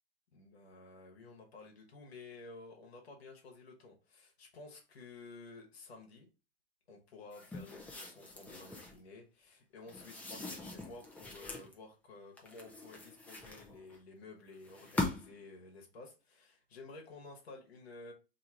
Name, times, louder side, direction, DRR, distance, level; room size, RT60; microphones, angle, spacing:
voice 1, 0.3-6.3 6.9-18.1, left 3 dB, 90° left, 1.1 m, -53 dB
sound 1, 7.3-9.0 9.9-11.7 12.4-14.0 14.6-15.4, left 2 dB, 5° left, 0.5 m, -41 dB
2.8 x 2.4 x 4.2 m
hypercardioid pair, 125°, 31 cm